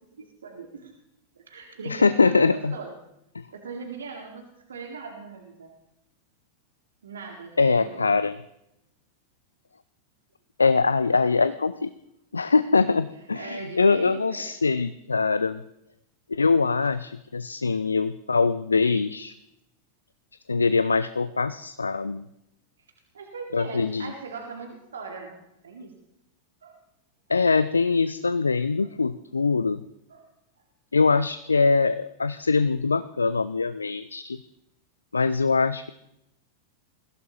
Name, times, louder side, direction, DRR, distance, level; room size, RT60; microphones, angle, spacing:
voice 1, 0.1-0.9 1.4-2.9 3.5-5.7 7.0-8.1 13.4-14.5 23.1-25.9 26.6-26.8 28.8-28.9 30.1-30.3, right 4 dB, 70° right, 2 dB, 1.8 m, -40 dB
voice 2, 1.9-2.7 3.3-3.5 7.6-8.3 10.6-11.9 12.3-15.6 16.3-19.3 20.5-22.2 23.5-24.1 27.3-29.8 30.9-34.4 35.1-35.9, left 4 dB, 75° left, 14 dB, 0.4 m, -23 dB
21.5 x 15.5 x 2.9 m, 0.83 s
figure-of-eight pair, 90°, 0 cm